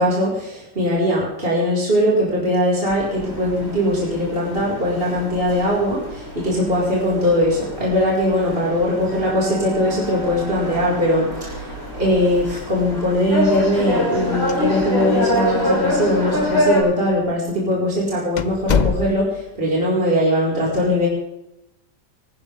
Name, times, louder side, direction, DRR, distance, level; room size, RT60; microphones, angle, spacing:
voice 1, 0.0-21.1, left 1 dB, 30° right, -5 dB, 5.6 m, -20 dB
sound 1, 2.9-16.8, left 1 dB, 15° right, 7.7 m, -25 dB
sound 2, 14.5-15.1 15.4-15.5 16.2-16.3 17.1-17.3 17.7-17.8 18.4-19.5, left 6 dB, 80° left, 0.4 m, -24 dB
23.0 x 13.5 x 3.7 m, 0.86 s
omnidirectional pair, 1.9 m